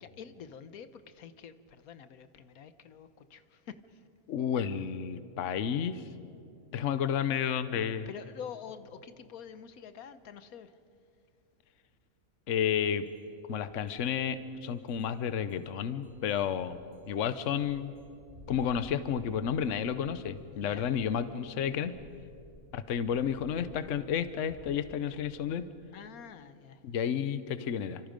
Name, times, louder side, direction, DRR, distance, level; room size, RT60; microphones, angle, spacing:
voice 1, 0.0-4.1 8.1-10.8 20.5-20.9 25.9-26.8, left 7 dB, 85° left, 12 dB, 1.4 m, -47 dB
voice 2, 4.3-6.0 6.7-8.1 12.5-13.1 13.5-16.8 17.1-17.9 18.5-22.0 22.7-25.7 26.8-28.0, left 8 dB, 65° left, 12 dB, 1.1 m, -31 dB
sound 1, 13.1-13.2 13.5-25.4, left 1 dB, 40° right, 3.9 m, -56 dB
29.5 x 26.0 x 5.2 m, 2.4 s
omnidirectional pair, 1.5 m